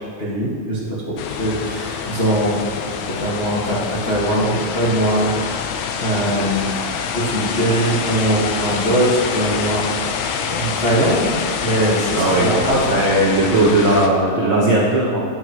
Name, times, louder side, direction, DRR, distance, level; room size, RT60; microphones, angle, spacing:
voice 1, 0.2-2.6 3.1-5.6 6.0-6.7 7.1-9.8 10.5-12.9, right 1 dB, 45° left, -9 dB, 0.7 m, -21 dB
sound 1, 1.2-14.1, left 6 dB, 80° left, 1.7 m, -26 dB
voice 2, 12.2-12.6 12.9-15.2, right 2 dB, 75° right, -5 dB, 1.1 m, -17 dB
9.7 x 9.7 x 2.9 m, 2.2 s
omnidirectional pair, 4.0 m